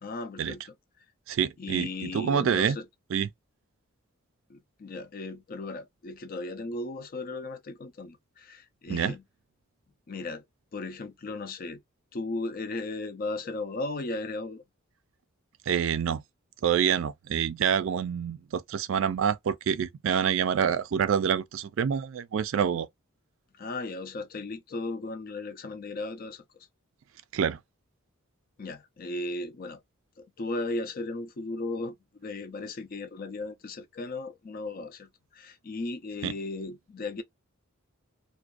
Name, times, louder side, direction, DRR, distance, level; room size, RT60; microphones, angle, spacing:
voice 1, 0.0-0.7 1.6-2.9 4.5-9.2 10.1-10.4 10.7-11.8 12.1-14.6 23.6-26.4 28.6-29.8 30.2-37.2, left 2 dB, 40° left, 0.4 m, -36 dB
voice 2, 1.3-2.8 3.1-3.3 8.9-9.1 15.7-16.2 16.6-22.9 27.3-27.6 36.2-36.3, right 7 dB, 60° right, 0.3 m, -27 dB
2.4 x 2.2 x 2.3 m
head